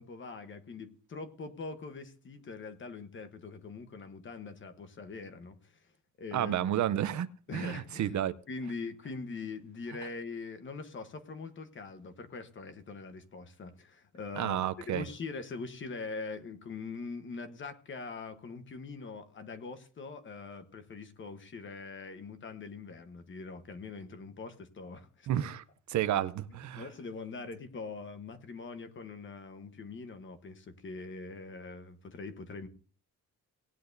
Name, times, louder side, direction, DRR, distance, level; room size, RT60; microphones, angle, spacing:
voice 1, 0.0-5.8 6.2-6.5 7.5-8.2 8.5-14.6 14.9-25.4 26.7-32.7, left 4 dB, 40° left, 1.1 m, -43 dB
voice 2, 6.3-7.3 7.5-8.3 14.4-15.0 25.3-25.6 25.9-26.8, right 11 dB, 65° right, 0.7 m, -31 dB
18.5 x 10.0 x 2.6 m
wide cardioid pair, 165°, 31 cm